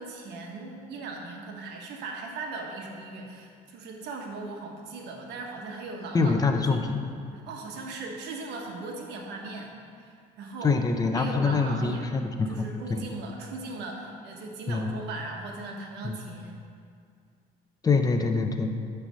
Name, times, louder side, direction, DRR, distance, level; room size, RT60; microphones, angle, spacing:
voice 1, 0.0-6.9 7.3-9.7 10.0-10.7 11.1-12.1 12.5-16.6, right 3 dB, 85° right, 1 dB, 1.1 m, -38 dB
voice 2, 6.1-7.1 10.6-13.0 14.7-14.9 16.0-16.2 17.8-18.7, left 4 dB, 20° left, 5 dB, 0.6 m, -25 dB
8.8 x 3.4 x 6.2 m, 2.2 s
cardioid pair, 110°, 17 cm